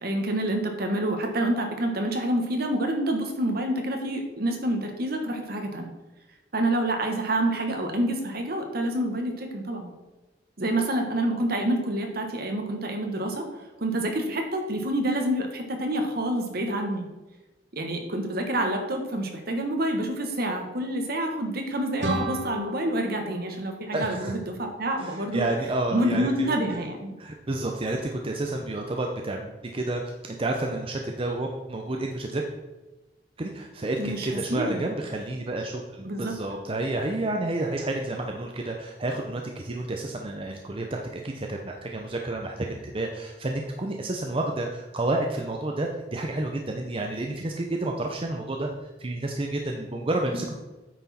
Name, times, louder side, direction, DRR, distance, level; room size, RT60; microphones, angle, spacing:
voice 1, 0.0-5.9 6.5-9.9 10.6-13.4 13.8-17.1 17.7-25.4 25.9-27.1 34.0-34.8 36.0-36.3 50.3-50.5, right 1 dB, 60° right, 4 dB, 1.4 m, -27 dB
sound 1, 22.0-24.8, right 1 dB, 85° right, 1.1 m, -34 dB
voice 2, 23.9-24.3 25.0-26.8 27.2-32.4 33.4-50.5, right 2 dB, 30° right, 2 dB, 0.7 m, -30 dB
9.0 x 6.1 x 4.3 m, 1.1 s
head